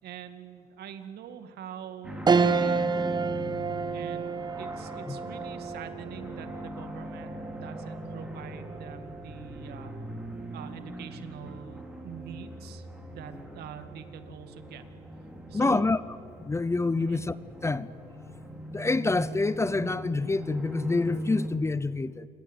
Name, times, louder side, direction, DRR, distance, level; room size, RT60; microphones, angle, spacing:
voice 1, 0.0-3.2 3.9-9.9 10.5-12.9 13.1-14.8 15.5-15.9 17.0-17.2, right 9 dB, 70° right, 2.2 m, -44 dB
sound 1, 2.0-21.5, equal, 5° right, 3.8 m, -41 dB
sound 2, 2.3-11.9 12.3-12.4 13.8-14.2, right 5 dB, 25° right, 0.9 m, -31 dB
voice 2, 15.5-16.0 16.4-17.4 17.6-17.9 18.7-22.3, left 3 dB, 15° left, 0.6 m, -27 dB
28.0 x 22.5 x 8.2 m
cardioid pair, 110°, 17 cm